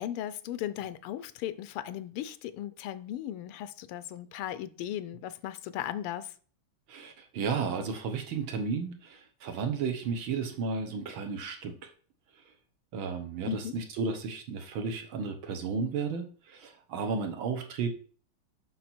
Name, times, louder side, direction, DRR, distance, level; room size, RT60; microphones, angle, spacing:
voice 1, 0.0-6.3 13.4-13.8, left 11 dB, 85° left, 1.6 m, -37 dB
voice 2, 6.9-11.8 12.9-17.9, right 5 dB, 70° right, 1.8 m, -33 dB
7.6 x 5.7 x 4.3 m
omnidirectional pair, 2.4 m